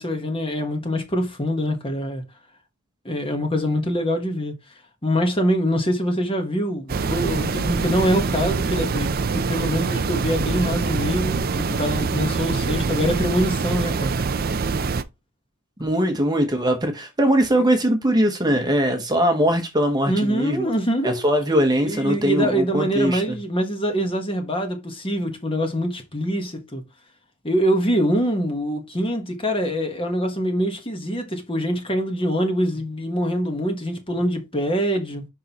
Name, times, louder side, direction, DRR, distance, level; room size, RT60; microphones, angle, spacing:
voice 1, 0.0-2.2 3.0-4.5 5.0-14.1 20.0-21.2 21.8-26.8 27.4-35.2, equal, 25° left, 1.3 m, -24 dB
sound 1, 6.9-15.0, right 4 dB, 40° right, 0.4 m, -24 dB
voice 2, 15.8-20.7 21.0-23.4, equal, 20° right, 1.0 m, -21 dB
6.2 x 5.4 x 2.9 m
head